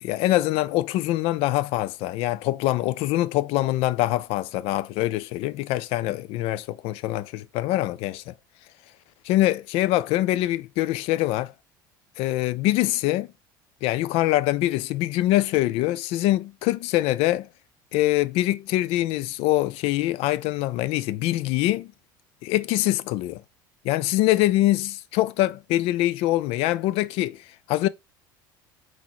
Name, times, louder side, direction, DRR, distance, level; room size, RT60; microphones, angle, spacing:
voice 1, 0.0-8.3 9.2-11.5 12.2-13.3 13.8-17.5 17.9-21.9 22.4-23.4 23.8-27.9, left 16 dB, 60° left, 0.4 m, -24 dB
3.9 x 3.0 x 3.0 m
hypercardioid pair, 80°, 11 cm